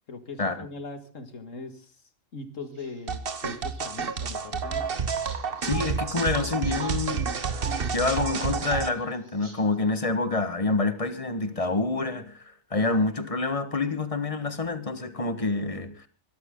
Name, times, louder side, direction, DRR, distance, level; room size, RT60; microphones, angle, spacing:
voice 1, 0.1-2.0 2.3-4.9, left 3 dB, 75° left, 10 dB, 2.3 m, -40 dB
sound 1, 2.6-9.8, right 1 dB, 20° right, 3.3 m, -52 dB
sound 2, 3.1-8.9, right 5 dB, 50° right, 1.3 m, -29 dB
voice 2, 5.6-12.4 12.7-16.1, left 3 dB, 25° left, 11 dB, 1.5 m, -27 dB
22.5 x 13.0 x 3.8 m, 0.33 s
omnidirectional pair, 1.3 m